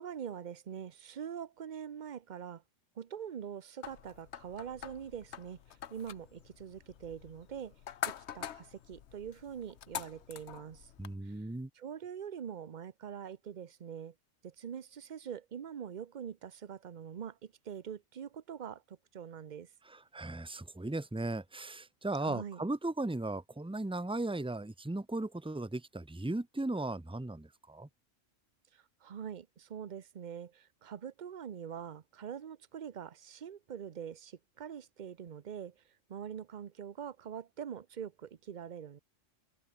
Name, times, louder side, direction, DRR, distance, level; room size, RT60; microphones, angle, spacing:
voice 1, 0.0-2.6 3.0-5.6 5.9-7.7 8.0-10.9 11.3-11.4 11.8-14.1 14.4-19.7 22.2-22.6 29.0-35.7 36.1-39.0, right 8 dB, 45° right, 0.8 m, -44 dB
sound 1, 3.8-11.1, left 9 dB, 65° left, 1.1 m, -45 dB
voice 2, 11.0-11.7 19.8-27.9, right 2 dB, 5° right, 0.4 m, -37 dB
omnidirectional pair, 1.3 m